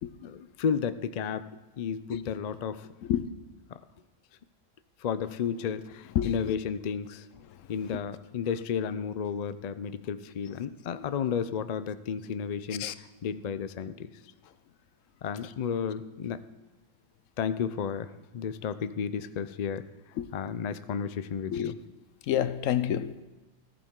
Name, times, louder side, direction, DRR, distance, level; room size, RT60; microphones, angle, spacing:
voice 1, 0.2-1.5 1.8-2.9 3.7-3.8 5.0-7.3 7.7-14.1 15.2-16.4 17.4-19.9 20.3-21.8, left 7 dB, 60° left, 0.4 m, -32 dB
voice 2, 22.3-23.2, left 10 dB, 80° left, 1.0 m, -28 dB
14.5 x 13.5 x 3.7 m
omnidirectional pair, 1.3 m